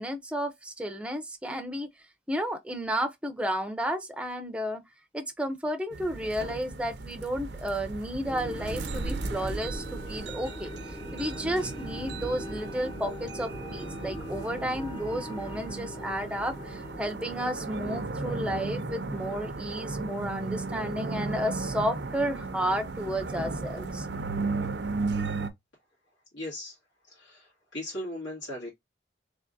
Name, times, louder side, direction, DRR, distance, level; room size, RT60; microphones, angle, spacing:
voice 1, 0.0-1.9 2.3-4.8 5.1-10.7 11.1-24.1, equal, 5° right, 0.6 m, -32 dB
sound 1, 5.9-25.5, right 3 dB, 70° right, 0.6 m, -35 dB
sound 2, 8.2-19.6, equal, 25° left, 0.9 m, -42 dB
voice 2, 26.3-26.8 27.1-28.7, left 1 dB, 85° left, 2.0 m, -38 dB
3.5 x 3.4 x 2.6 m
head